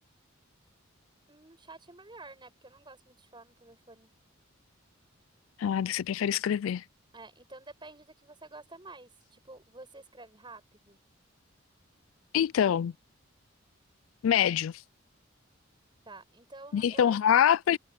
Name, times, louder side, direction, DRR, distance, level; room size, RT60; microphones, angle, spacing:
voice 1, 1.3-4.1 7.1-11.0 16.0-17.2, right 2 dB, 25° right, 6.7 m, -50 dB
voice 2, 5.6-6.8 12.3-12.9 14.2-14.7 16.7-17.8, left 9 dB, 80° left, 0.3 m, -25 dB
head